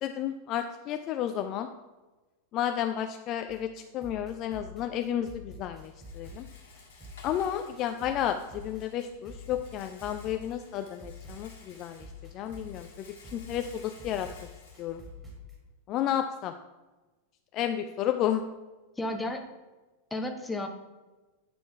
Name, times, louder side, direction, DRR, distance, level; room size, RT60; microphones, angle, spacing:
voice 1, 0.0-1.7 2.5-6.5 7.2-13.1 13.3-14.3 14.8-15.0 15.9-16.5 17.5-18.5, left 10 dB, 35° left, 7 dB, 0.3 m, -32 dB
sound 1, 3.5-15.6, left 2 dB, 10° right, 2.2 m, -47 dB
Rattle, 4.8-15.7, left 4 dB, 60° left, 1.7 m, -55 dB
voice 2, 19.0-19.4 20.1-20.7, left 1 dB, 10° left, 4 dB, 0.8 m, -32 dB
8.4 x 3.8 x 4.6 m, 1.2 s
figure-of-eight pair, 90°, 0 cm